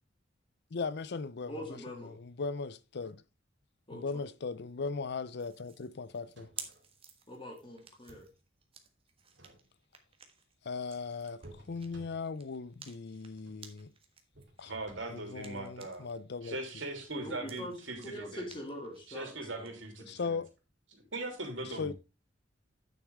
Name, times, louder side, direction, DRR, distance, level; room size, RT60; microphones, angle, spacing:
voice 1, 0.7-3.2 3.9-6.5 10.6-13.9 14.6-14.7 15.1-16.6 20.1-20.5 21.8-21.9, left 4 dB, 60° left, 0.5 m, -38 dB
voice 2, 1.5-2.1 3.9-4.2 7.3-8.3 17.2-17.8 18.0-19.7, equal, 25° left, 2.5 m, -43 dB
sound 1, 5.4-16.2 16.5-19.7, right 6 dB, 30° right, 1.4 m, -54 dB
sound 2, 6.1-6.9 7.8-8.4 9.2-10.0 11.4-12.5 13.3-13.7 14.3-15.4 17.0-17.2, right 1 dB, 70° right, 2.2 m, -56 dB
voice 3, 14.7-16.0 16.4-18.5 19.1-20.4 20.9-21.9, right 2 dB, 90° right, 3.1 m, -40 dB
9.4 x 7.2 x 3.5 m
head